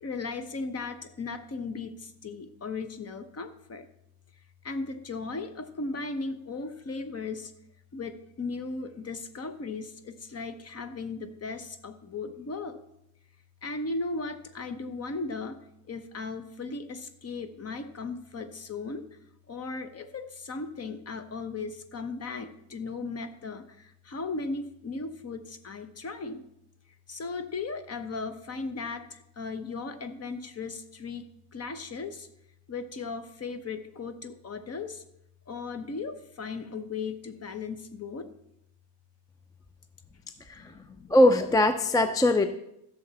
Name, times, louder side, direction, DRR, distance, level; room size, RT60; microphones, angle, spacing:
voice 1, 0.0-3.9 4.6-7.5 7.9-12.8 13.6-15.6 15.9-19.0 19.5-23.6 24.1-26.4 27.1-29.0 29.4-31.2 31.5-32.3 32.7-35.0 35.5-38.3 40.6-41.1, left 3 dB, 35° left, 10 dB, 1.0 m, -36 dB
voice 2, 41.1-42.5, left 1 dB, 10° left, 9 dB, 0.3 m, -21 dB
15.0 x 6.8 x 4.2 m, 0.82 s
cardioid pair, 130°, 44 cm